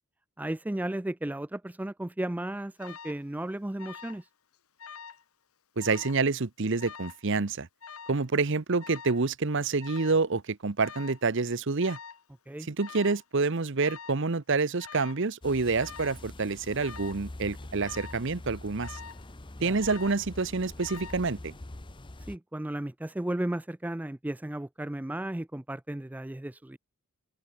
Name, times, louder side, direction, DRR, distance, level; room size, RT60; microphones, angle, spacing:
voice 1, 0.4-4.3 12.5-12.7 19.6-19.8 22.3-26.8, right 1 dB, 5° right, 0.3 m, -34 dB
Alarm, 2.8-3.2 3.8-4.3 4.5-5.2 5.8-6.2 6.8-7.2 7.8-8.2 8.8-9.2 9.8-10.2 10.8-11.2 11.8-12.2 12.8-13.2 13.8-14.3 14.8-15.2 15.8-16.2 16.8-17.2 17.8-18.2 18.8-19.3 19.8-20.3 20.8-21.3, left 6 dB, 85° left, 1.8 m, -45 dB
voice 2, 5.8-7.7 8.1-12.0 12.7-19.0 19.6-21.5, right 4 dB, 60° right, 0.9 m, -28 dB
sound 1, 15.4-22.4, left 1 dB, 20° left, 0.8 m, -44 dB
head